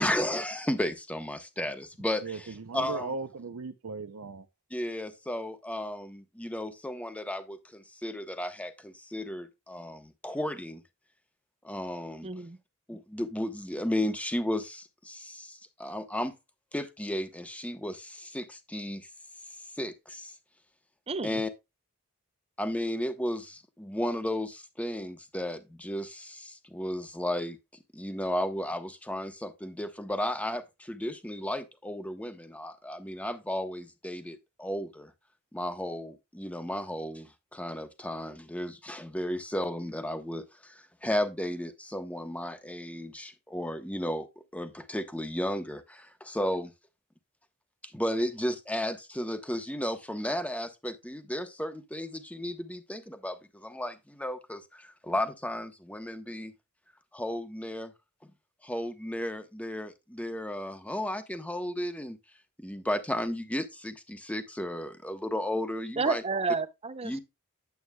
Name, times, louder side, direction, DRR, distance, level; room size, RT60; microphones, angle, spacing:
voice 1, 0.0-3.1 4.7-10.8 11.6-12.3 12.9-16.3 16.7-19.1 19.8-20.3 21.2-21.5 22.6-27.6 27.9-35.1 35.5-44.3 44.5-46.7 47.8-56.5 57.1-57.9 58.6-62.2 62.6-66.2 67.0-67.2, left 1 dB, 5° left, 0.9 m, -34 dB
voice 2, 2.2-4.5, right 4 dB, 90° right, 0.7 m, -37 dB
voice 3, 12.2-12.6 21.1-21.4 66.0-67.1, right 4 dB, 30° right, 0.6 m, -30 dB
9.3 x 8.0 x 2.3 m
head